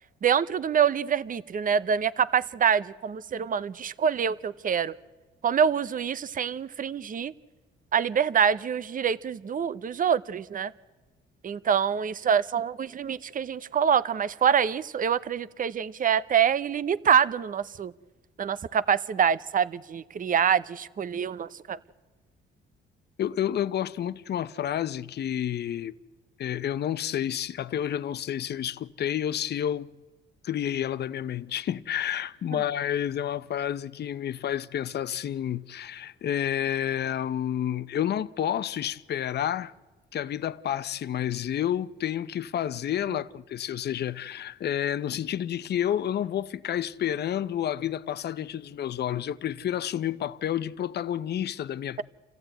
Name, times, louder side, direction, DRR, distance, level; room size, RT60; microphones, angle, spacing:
voice 1, 0.2-4.9 5.4-7.3 7.9-10.7 11.4-17.9 18.4-21.8 32.5-32.6, right 7 dB, 45° right, 0.8 m, -25 dB
voice 2, 23.2-25.9 26.4-29.9 30.4-39.7 40.1-52.0, left 10 dB, 55° left, 0.7 m, -30 dB
28.5 x 15.0 x 9.1 m
cardioid pair, 90°, 20 cm